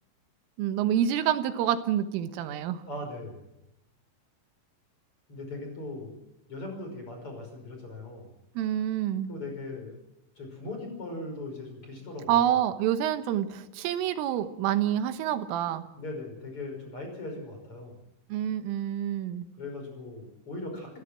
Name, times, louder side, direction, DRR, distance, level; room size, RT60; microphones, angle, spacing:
voice 1, 0.6-2.8 8.6-9.3 12.3-15.9 18.3-19.5, right 10 dB, 90° right, 9 dB, 3.8 m, -27 dB
voice 2, 2.8-3.4 5.3-6.1 6.5-8.3 9.3-10.0 10.4-12.6 15.9-18.0 19.6-21.0, left 2 dB, 30° left, 3 dB, 6.1 m, -39 dB
28.0 x 13.0 x 7.5 m, 0.92 s
omnidirectional pair, 5.6 m